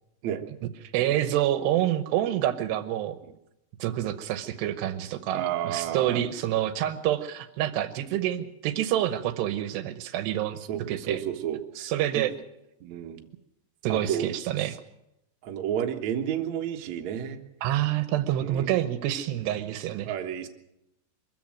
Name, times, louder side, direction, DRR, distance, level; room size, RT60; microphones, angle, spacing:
voice 1, 0.9-3.2 3.8-10.6 10.9-11.2 11.8-12.3 13.8-14.8 17.6-20.1, right 12 dB, 75° right, 11 dB, 2.9 m, -27 dB
voice 2, 5.3-6.2 10.7-11.9 12.1-12.2 12.8-13.2 13.9-14.3 15.4-17.4 18.4-18.7 20.0-20.5, right 10 dB, 60° right, 3 dB, 2.0 m, -31 dB
23.5 x 15.0 x 7.7 m, 0.86 s
omnidirectional pair, 5.1 m